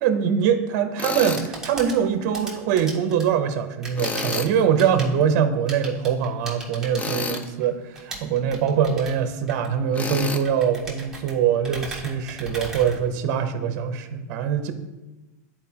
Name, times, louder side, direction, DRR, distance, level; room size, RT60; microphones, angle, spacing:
voice 1, 0.0-14.7, right 8 dB, 55° right, 8 dB, 0.6 m, -23 dB
Tools, 1.0-1.5 4.0-4.5 6.9-7.5 9.9-10.4, left 4 dB, 15° left, 0.4 m, -29 dB
sound 1, 1.2-13.6, right 2 dB, 5° right, 1.2 m, -39 dB
9.8 x 4.3 x 2.8 m, 1.1 s
supercardioid pair, 135°, 9 cm